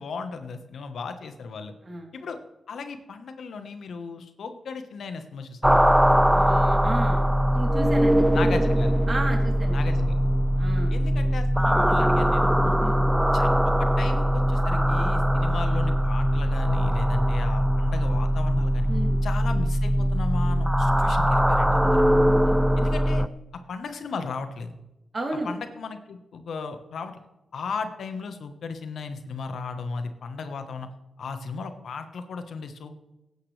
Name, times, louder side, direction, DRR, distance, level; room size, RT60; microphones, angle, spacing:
voice 1, 0.0-1.7 2.1-2.4 2.7-5.8 8.3-8.9 9.7-10.2 10.9-12.8 13.3-18.9 19.2-22.1 22.8-23.2 23.7-24.7 25.4-27.2 27.5-30.9 31.2-33.0, left 4 dB, 80° left, 8 dB, 1.2 m, -35 dB
sound 1, 5.6-23.3, equal, 5° right, 0.4 m, -21 dB
voice 2, 6.3-7.2 7.5-8.2 9.1-9.7 10.0-10.1 10.6-11.0 12.8-13.0 18.9-19.2 22.3-22.6 25.1-25.5, right 2 dB, 40° right, 1 dB, 3.3 m, -33 dB
18.0 x 9.6 x 3.3 m, 0.97 s
cardioid pair, 70°, 0 cm